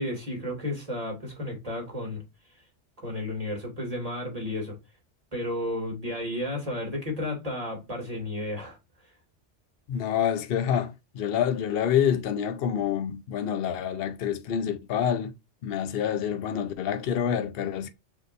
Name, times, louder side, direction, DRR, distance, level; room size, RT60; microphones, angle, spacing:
voice 1, 0.0-2.2 3.0-4.8 5.3-8.8, left 1 dB, 30° right, 2.2 m, -32 dB
voice 2, 9.9-15.3 15.6-17.9, left 9 dB, 60° left, 0.8 m, -27 dB
6.4 x 3.0 x 2.5 m
omnidirectional pair, 1.2 m